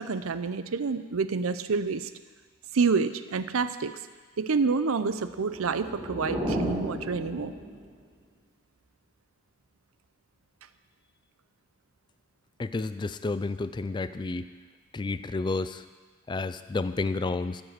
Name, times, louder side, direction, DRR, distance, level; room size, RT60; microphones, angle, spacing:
voice 1, 0.0-2.1 2.7-3.9 4.4-7.5, right 4 dB, 80° right, 12 dB, 0.6 m, -28 dB
sound 1, 5.3-8.0, equal, 20° right, 2.0 m, -33 dB
voice 2, 12.6-14.5 14.9-15.8 16.3-17.6, left 3 dB, 20° left, 13 dB, 0.3 m, -30 dB
14.0 x 5.4 x 7.5 m, 1.4 s
head